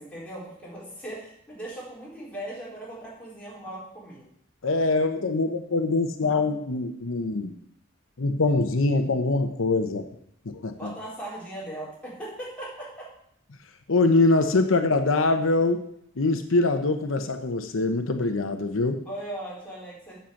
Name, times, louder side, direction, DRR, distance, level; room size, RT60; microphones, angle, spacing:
voice 1, 0.0-4.3 10.8-13.1 14.7-14.8 19.0-20.1, right 1 dB, 5° left, -8 dB, 4.1 m, -38 dB
voice 2, 4.6-7.5 8.2-10.1 10.4-10.9 13.9-15.8 16.2-19.0, left 3 dB, 85° left, 7 dB, 0.9 m, -23 dB
7.7 x 6.8 x 7.1 m, 0.71 s
head